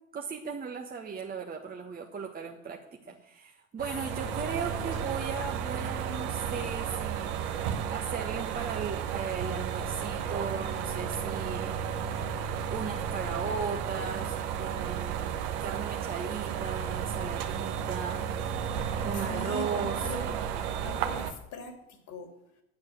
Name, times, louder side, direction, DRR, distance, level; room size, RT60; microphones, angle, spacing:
voice 1, 0.1-7.3 7.6-11.7 12.7-15.3 15.6-18.3 19.0-20.0, right 6 dB, 20° right, 1 dB, 1.3 m, -37 dB
sound 1, 3.8-21.3, right 8 dB, 55° right, 1.4 m, -33 dB
voice 2, 4.1-5.0 19.1-20.3 20.8-22.3, left 3 dB, 45° left, 7 dB, 2.7 m, -42 dB
10.5 x 8.6 x 6.4 m, 0.84 s
figure-of-eight pair, 70°, 39 cm